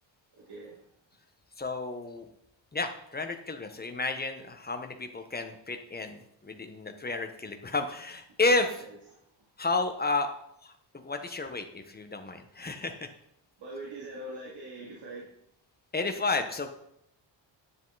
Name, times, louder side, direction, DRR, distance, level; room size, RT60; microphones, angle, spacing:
voice 1, 0.3-0.8 13.6-15.3, right 1 dB, 60° right, -4 dB, 2.9 m, -42 dB
voice 2, 1.6-2.3 2.7-8.8 9.6-10.3 10.6-10.7 11.0-13.1 15.9-16.7, left 3 dB, 20° left, 5 dB, 1.4 m, -31 dB
10.5 x 10.0 x 4.2 m, 0.75 s
cardioid pair, 125°, 46 cm